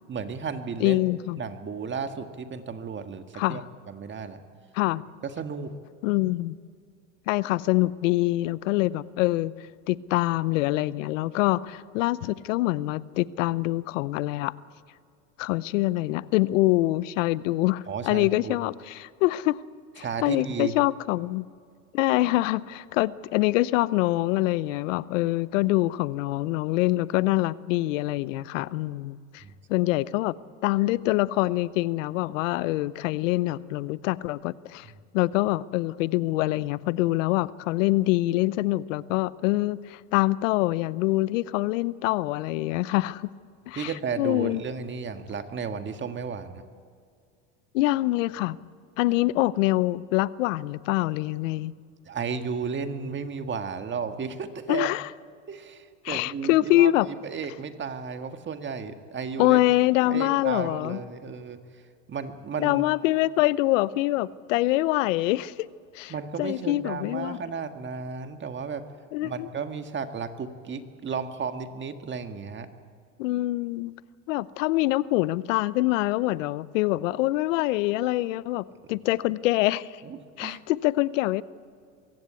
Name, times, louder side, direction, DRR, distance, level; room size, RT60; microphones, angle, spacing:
voice 1, 0.1-1.0 1.4-3.6 3.9-4.4 5.2-5.8 17.9-18.6 20.0-20.8 29.4-29.5 43.7-46.6 52.1-54.9 55.5-59.6 60.1-61.6 62.1-62.9 66.1-68.9 69.2-72.7 80.0-80.6, right 5 dB, 30° right, 8 dB, 1.7 m, -33 dB
voice 2, 0.8-1.4 3.3-3.6 4.7-5.0 6.0-6.6 7.3-9.5 9.9-14.5 15.4-19.6 20.0-21.5 21.9-29.4 29.7-30.3 30.6-34.9 35.1-43.3 43.7-44.6 47.7-48.6 49.0-51.7 54.7-55.1 56.0-57.1 59.4-61.0 62.6-65.7 65.9-66.1 66.4-67.4 69.1-69.5 73.2-73.9 74.3-80.0 80.4-81.4, left 18 dB, 75° left, 19 dB, 0.8 m, -25 dB
23.5 x 16.0 x 8.4 m, 2.2 s
supercardioid pair, 95°, 38 cm